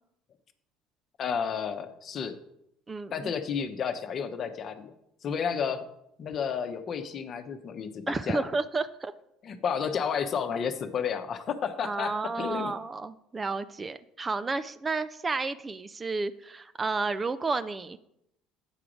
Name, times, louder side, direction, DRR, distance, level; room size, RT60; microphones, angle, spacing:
voice 1, 1.2-2.4 3.1-4.9 5.2-5.8 6.2-8.5 9.4-12.7, left 7 dB, 45° left, 8 dB, 0.9 m, -31 dB
voice 2, 2.9-3.3 8.1-9.1 11.8-18.0, right 3 dB, 25° right, 13 dB, 0.5 m, -31 dB
9.0 x 4.9 x 6.0 m, 0.79 s
figure-of-eight pair, 60°, 0 cm